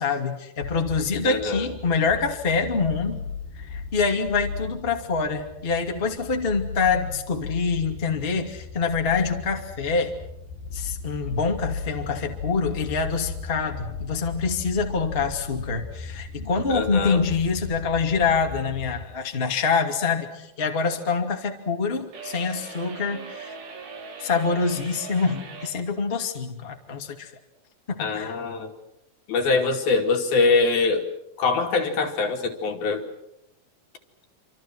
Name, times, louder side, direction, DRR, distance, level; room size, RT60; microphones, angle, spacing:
voice 1, 0.0-3.2 3.7-10.1 10.7-23.5 24.2-27.3 28.1-28.3, left 5 dB, 20° left, 3 dB, 2.0 m, -25 dB
sound 1, 0.6-19.1, left 4 dB, 85° left, 6.0 m, -36 dB
voice 2, 1.2-1.7 16.7-17.2 28.0-28.7 29.3-31.1 31.4-33.1, left 4 dB, 65° left, 4 dB, 4.3 m, -23 dB
sound 2, 22.1-25.8, right 5 dB, 90° right, 6.0 m, -40 dB
28.0 x 26.5 x 6.2 m, 0.83 s
omnidirectional pair, 4.7 m